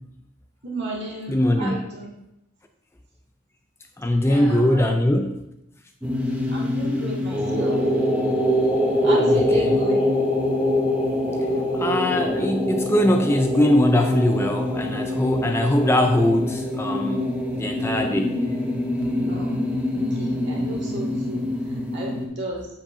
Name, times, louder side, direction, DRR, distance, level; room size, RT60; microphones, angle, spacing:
voice 1, 0.6-2.1 4.2-5.0 6.5-7.8 9.0-10.1 19.2-19.6 19.9-22.7, right 1 dB, 55° right, -4 dB, 2.0 m, -33 dB
voice 2, 1.3-1.8 4.0-5.3 9.3-9.7 11.7-17.3 17.6-18.3, left 1 dB, 10° left, 4 dB, 0.3 m, -21 dB
sound 1, 6.0-22.3, left 1 dB, 5° right, 0.8 m, -24 dB
7.7 x 7.1 x 2.6 m, 0.86 s
head